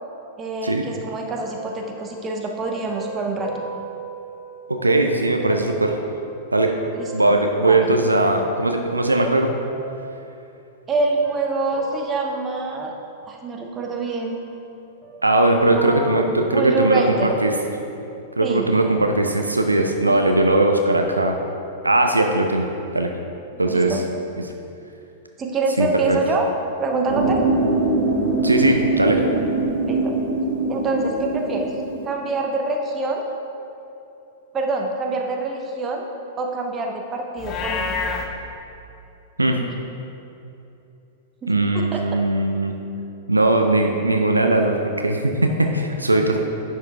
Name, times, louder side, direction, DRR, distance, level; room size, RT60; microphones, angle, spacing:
voice 1, 0.4-3.5 6.9-7.4 7.7-7.8 10.9-12.9 13.3-14.4 15.6-16.2 16.5-17.3 18.4-18.7 20.1-20.3 23.5-24.0 25.4-26.5 26.8-27.4 29.9-30.1 30.7-31.7 32.0-33.2 34.5-36.0 36.4-38.2 41.4-42.0, right 3 dB, 20° right, 1 dB, 0.9 m, -26 dB
sound 1, 1.4-5.0 5.5-9.0 9.7-10.3 11.0-13.3 13.7-14.8 15.0-17.1 17.7-17.8, right 1 dB, 5° right, 1.7 m, -37 dB
voice 2, 4.7-6.0 6.5-6.7 7.1-9.5 15.2-17.5 18.4-21.4 21.8-23.1 23.6-24.0 25.8-26.2 28.4-29.2 39.4-39.5 41.5-42.7 43.3-46.4, right 2 dB, 85° right, 3 dB, 0.5 m, -19 dB
sound 2, 27.1-32.1, right 2 dB, 55° right, 1.1 m, -22 dB
Livestock farm animals working animals, 37.4-38.3, left 4 dB, 30° left, 0.7 m, -26 dB
10.5 x 4.6 x 3.6 m, 2.8 s
figure-of-eight pair, 100°, 0 cm